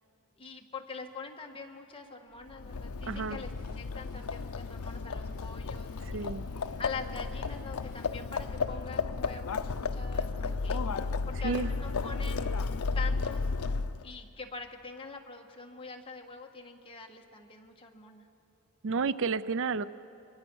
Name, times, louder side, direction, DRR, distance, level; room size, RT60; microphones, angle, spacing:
voice 1, 0.4-3.5 3.8-6.3 6.8-10.8 11.3-12.5 12.9-13.5 14.0-18.3, left 4 dB, 25° left, 2 dB, 1.5 m, -44 dB
Livestock farm animals working animals, 2.5-14.1, left 4 dB, 75° left, 0.6 m, -33 dB
sound 1, 2.9-8.1, equal, 45° left, 7.3 m, -58 dB
voice 2, 3.1-3.4 6.0-6.4 11.4-11.7 18.8-19.9, right 4 dB, 60° right, 16 dB, 0.5 m, -31 dB
25.0 x 22.5 x 6.2 m, 2.8 s
head